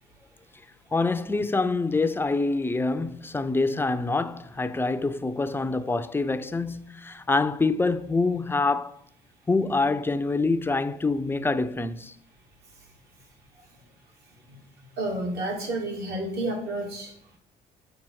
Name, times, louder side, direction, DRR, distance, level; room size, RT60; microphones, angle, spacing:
voice 1, 0.9-9.0 9.5-12.2, left 3 dB, 15° left, 0.4 m, -26 dB
voice 2, 14.5-17.2, right 1 dB, 75° right, 2.5 m, -31 dB
7.4 x 5.0 x 4.7 m
cardioid pair, 110°, 17 cm